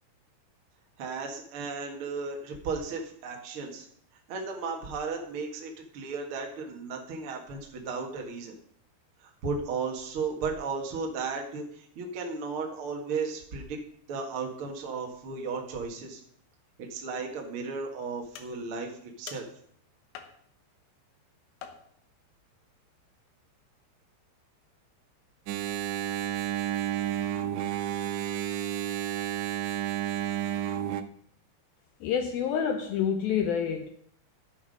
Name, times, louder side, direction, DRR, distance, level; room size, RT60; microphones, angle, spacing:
voice 1, 1.0-3.9 4.3-8.5 9.2-13.8 14.1-16.2 16.9-19.4, right 4 dB, 65° right, 2 dB, 1.3 m, -35 dB
metal hits, 18.4-18.8 19.3-19.7 20.1-20.7 21.6-22.2, left 8 dB, 75° left, 3.1 m, -47 dB
Engine, 25.5-31.0, right 11 dB, 85° right, 3.0 m, -31 dB
voice 2, 32.0-33.9, left 7 dB, 90° left, 6 dB, 2.1 m, -28 dB
12.0 x 8.5 x 5.4 m, 0.64 s
omnidirectional pair, 5.1 m